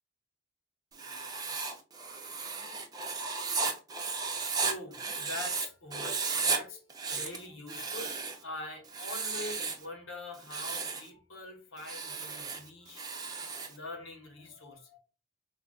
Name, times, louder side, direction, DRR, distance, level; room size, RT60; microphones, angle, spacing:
Writing, 0.9-5.7 5.9-6.6 6.9-8.4 8.9-9.8 10.3-11.1 11.8-13.8, right 4 dB, 20° right, 0.5 m, -34 dB
voice 1, 4.5-13.1 13.7-15.0, left 2 dB, 70° left, 0.9 m, -44 dB
3.7 x 2.4 x 2.2 m
head